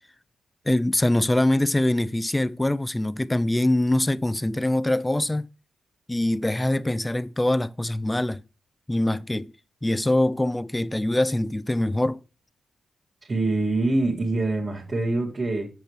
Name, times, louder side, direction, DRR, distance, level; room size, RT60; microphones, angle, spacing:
voice 1, 0.7-5.5 6.1-8.4 8.9-9.5 9.8-12.2, left 1 dB, 10° left, 0.3 m, -23 dB
voice 2, 13.3-15.7, right 2 dB, 25° right, 1.9 m, -24 dB
7.6 x 6.7 x 3.1 m
cardioid pair, 115°, 0 cm